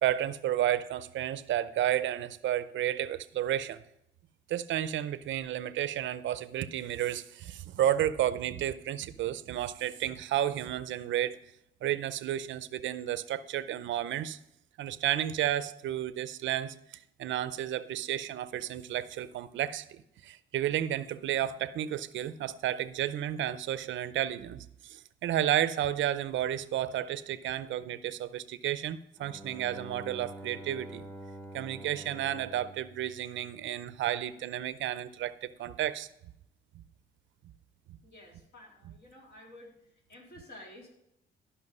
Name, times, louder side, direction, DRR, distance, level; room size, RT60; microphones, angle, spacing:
voice 1, 0.0-3.8 4.5-11.4 11.8-14.4 14.8-16.7 17.2-20.0 20.2-31.0 31.5-36.1 36.7-36.8 38.8-38.9, right 11 dB, 70° right, 15 dB, 0.6 m, -32 dB
Bowed string instrument, 29.2-34.0, right 1 dB, 10° left, 1.4 m, -47 dB
voice 2, 38.0-39.7 40.1-40.9, left 1 dB, 55° left, -1 dB, 3.7 m, -51 dB
13.0 x 5.7 x 5.4 m, 0.79 s
cardioid pair, 90°, 20 cm